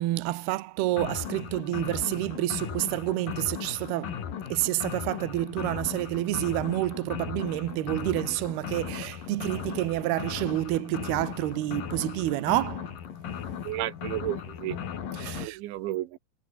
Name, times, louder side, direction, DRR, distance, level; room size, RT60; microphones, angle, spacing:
voice 1, 0.0-4.2 4.5-13.0 15.1-15.6, right 16 dB, 70° right, 2.9 m, -29 dB
sound 1, 0.9-15.5, left 8 dB, 55° left, 4.0 m, -37 dB
voice 2, 13.7-14.8 15.4-16.2, right 15 dB, 90° right, 3.6 m, -32 dB
omnidirectional pair, 5.1 m